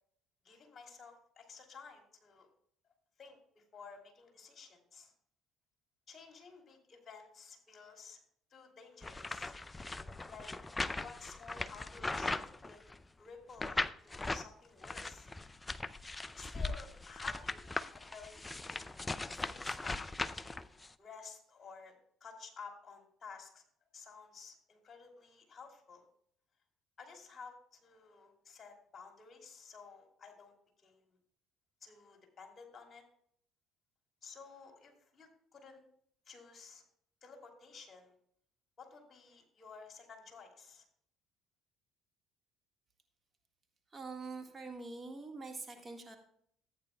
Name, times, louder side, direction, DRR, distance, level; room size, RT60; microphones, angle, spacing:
voice 1, 0.4-2.5 3.2-5.1 6.1-8.2 8.5-9.5 10.2-10.5 11.0-12.8 13.2-15.3 16.4-20.7 21.0-22.0 22.2-23.6 23.9-26.1 27.0-30.5 30.8-31.0 31.8-33.0 34.2-35.8 36.3-36.8 37.2-38.1 38.8-40.8, left 5 dB, 40° left, 3 dB, 2.8 m, -53 dB
sound 1, 9.0-13.1 13.6-14.5 14.8-20.9, left 2 dB, 20° left, 0.4 m, -39 dB
voice 2, 43.9-46.2, right 3 dB, 25° right, 4 dB, 1.6 m, -45 dB
14.5 x 8.9 x 2.3 m, 0.66 s
hypercardioid pair, 60°, 0 cm